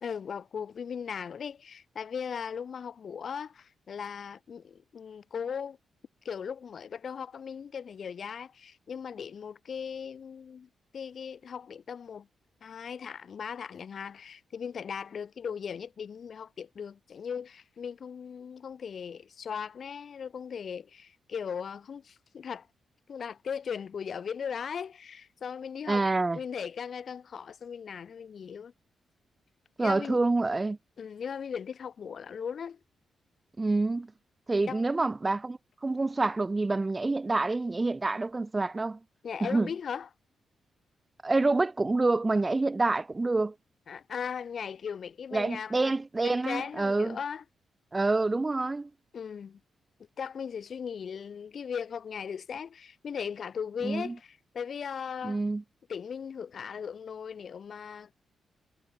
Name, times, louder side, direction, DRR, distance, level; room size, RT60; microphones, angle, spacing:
voice 1, 0.0-5.8 6.2-12.3 12.6-22.7 23.1-26.1 26.3-28.7 29.8-30.2 31.0-32.8 34.7-34.8 39.2-40.1 43.9-45.9 46.2-47.4 49.1-49.6 50.2-55.4 55.9-58.1, left 7 dB, 60° left, 0.7 m, -38 dB
voice 2, 25.9-26.4 29.8-30.8 33.6-34.1 34.5-39.0 39.4-39.7 41.2-43.5 45.3-47.2 47.9-48.9 53.8-54.1 55.2-55.6, right 3 dB, 25° right, 0.5 m, -27 dB
cardioid pair, 60°, 0 cm